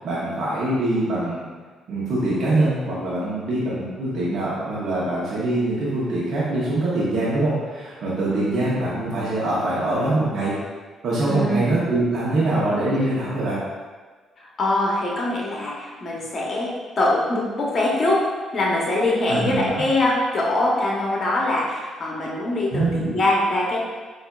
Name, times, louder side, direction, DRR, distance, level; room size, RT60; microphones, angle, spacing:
voice 1, 0.0-1.5 1.9-10.6 11.0-13.6 19.3-19.8 22.7-23.1, right 2 dB, 65° right, -8 dB, 0.8 m, -23 dB
voice 2, 8.3-8.6 11.3-11.7 14.4-23.8, left 1 dB, 45° left, -3 dB, 0.8 m, -23 dB
4.4 x 2.5 x 2.3 m, 1.4 s
cardioid pair, 85°, 0 cm